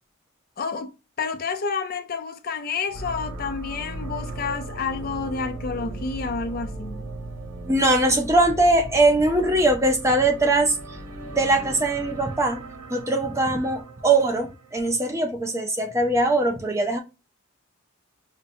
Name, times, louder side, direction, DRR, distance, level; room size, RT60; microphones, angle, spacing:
voice 1, 0.6-7.1, left 5 dB, 45° left, 0.4 m, -30 dB
sound 1, 2.9-14.8, right 1 dB, 85° right, 1.0 m, -37 dB
voice 2, 7.7-11.0 11.3-12.6 12.9-17.0, right 2 dB, 15° right, 0.5 m, -21 dB
5.5 x 2.1 x 2.6 m
head